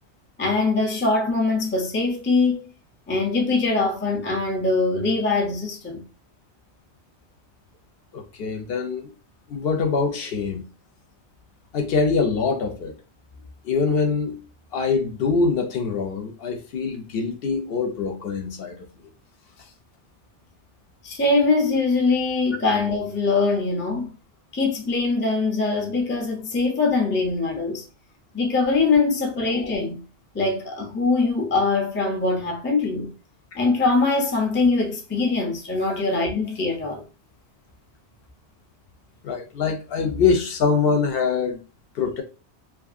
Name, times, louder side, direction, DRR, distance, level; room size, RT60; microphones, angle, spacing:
voice 1, 0.4-2.7 3.1-6.0 21.0-24.1 24.5-27.8 28.3-30.0 30.3-33.1 33.6-37.0, left 3 dB, 20° left, 0.3 m, -22 dB
voice 2, 8.1-9.1 9.5-10.7 11.7-12.9 13.6-14.4 14.7-18.8 39.2-41.6 42.0-42.2, left 5 dB, 65° left, 0.7 m, -24 dB
2.7 x 2.6 x 2.4 m
omnidirectional pair, 1.1 m